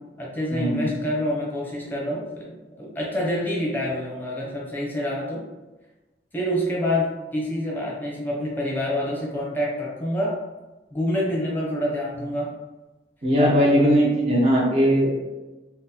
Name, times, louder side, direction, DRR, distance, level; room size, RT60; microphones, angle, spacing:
voice 1, 0.0-5.4 6.3-10.4 10.9-12.5 13.7-14.0, equal, 10° left, -4 dB, 0.6 m, -27 dB
voice 2, 0.5-0.9 13.2-15.2, equal, 35° right, -2 dB, 0.6 m, -19 dB
3.8 x 2.0 x 2.7 m, 1.1 s
head